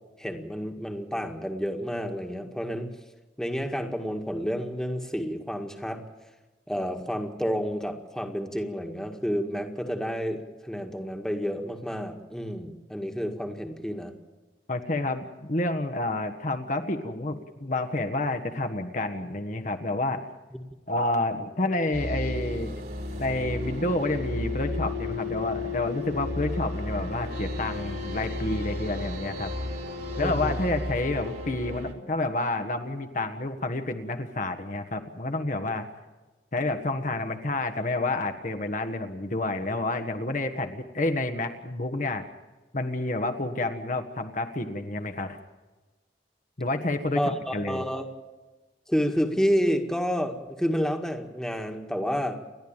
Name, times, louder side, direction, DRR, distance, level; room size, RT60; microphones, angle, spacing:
voice 1, 0.2-2.9 3.4-6.0 6.7-14.1 20.5-20.6 30.2-30.6 47.1-48.0 48.9-52.4, equal, 5° left, 4 dB, 1.8 m, -29 dB
voice 2, 14.7-20.2 20.9-22.7 23.2-29.5 30.2-35.9 36.5-42.3 42.7-45.4 46.6-47.2 47.5-47.8, left 2 dB, 45° left, 6 dB, 1.5 m, -29 dB
sound 1, 21.9-31.9, left 2 dB, 60° right, 3.4 m, -33 dB
29.5 x 11.5 x 8.9 m, 1.2 s
head